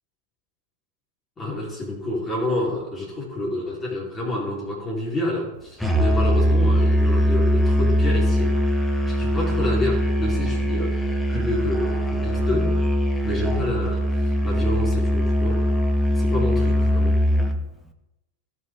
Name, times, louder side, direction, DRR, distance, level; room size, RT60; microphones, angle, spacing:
voice 1, 1.4-8.7 9.0-11.0 11.3-12.8 13.2-15.6 16.1-17.2, left 1 dB, 20° left, -5 dB, 4.5 m, -28 dB
Musical instrument, 5.8-17.7, equal, ahead, 1.4 m, -21 dB
18.0 x 6.4 x 3.9 m, 0.91 s
figure-of-eight pair, 90°, 0 cm